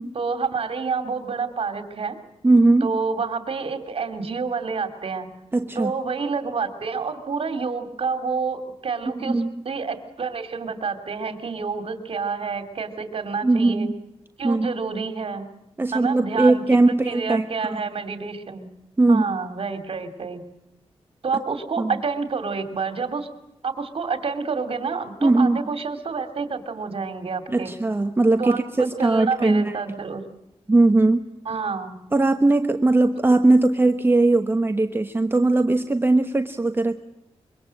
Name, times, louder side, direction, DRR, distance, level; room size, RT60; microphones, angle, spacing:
voice 1, 0.1-2.2 2.8-5.3 5.7-13.9 14.4-15.5 15.9-16.6 17.0-18.7 19.1-20.4 21.2-23.3 23.6-27.7 28.4-30.2 31.4-32.0, right 5 dB, 60° right, 8 dB, 2.8 m, -28 dB
voice 2, 2.4-2.9 5.5-5.9 9.3-9.5 13.4-13.9 14.4-14.7 15.8-17.4 19.0-19.2 21.8-21.9 25.2-25.6 27.5-29.7 30.7-31.3 32.1-37.0, right 2 dB, 20° right, 6 dB, 1.1 m, -19 dB
25.5 x 24.0 x 7.7 m, 0.87 s
wide cardioid pair, 140°, 11 cm